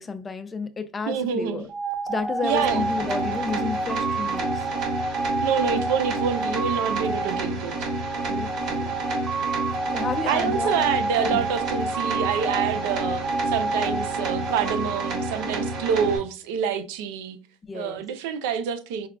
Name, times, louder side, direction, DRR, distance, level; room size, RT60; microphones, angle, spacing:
voice 1, 0.0-1.7 2.1-4.7 8.3-9.0 9.9-10.8 11.2-11.5 17.6-18.0, left 4 dB, 20° left, 0.4 m, -31 dB
voice 2, 1.1-1.7 2.4-2.9 5.4-7.9 10.3-17.4 17.7-19.1, right 7 dB, 75° right, 0.4 m, -27 dB
sound 1, 1.7-16.1, right 3 dB, 20° right, 0.8 m, -29 dB
sound 2, 2.5-16.2, right 2 dB, 55° right, 1.2 m, -30 dB
4.8 x 2.3 x 2.2 m
supercardioid pair, 115°, 0 cm